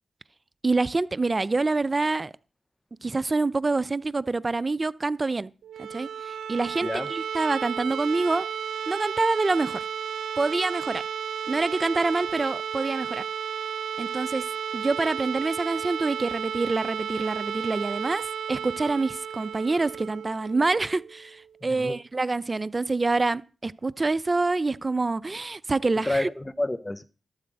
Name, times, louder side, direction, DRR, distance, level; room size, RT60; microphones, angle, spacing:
voice 1, 0.6-2.3 3.0-5.5 5.8-8.5 8.9-9.8 10.4-11.0 11.5-13.2 14.0-14.4 14.7-18.2 18.5-26.3, right 3 dB, 35° right, 0.5 m, -26 dB
sound 1, 5.6-21.4, right 8 dB, 90° right, 0.6 m, -33 dB
voice 2, 26.1-27.0, left 1 dB, 20° left, 0.7 m, -29 dB
12.0 x 5.0 x 7.8 m
cardioid pair, 50°, 0 cm